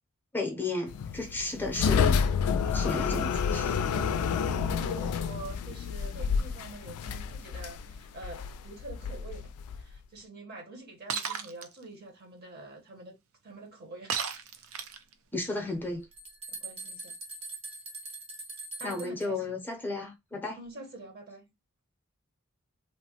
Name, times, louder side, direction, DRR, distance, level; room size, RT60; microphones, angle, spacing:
voice 1, 0.3-3.8 15.3-16.1 18.8-20.6, left 2 dB, 10° left, 0.6 m, -34 dB
sound 1, 0.9-10.0, left 6 dB, 85° left, 0.3 m, -29 dB
voice 2, 4.6-13.2 13.4-14.2 14.5-14.6 16.5-17.2 18.8-19.6 20.6-21.5, right 2 dB, 45° right, 0.9 m, -46 dB
Shatter, 11.1-11.7 14.1-15.1, right 6 dB, 65° right, 0.4 m, -33 dB
sound 2, 15.7-19.2, right 2 dB, 25° right, 0.6 m, -42 dB
3.1 x 2.1 x 2.8 m
head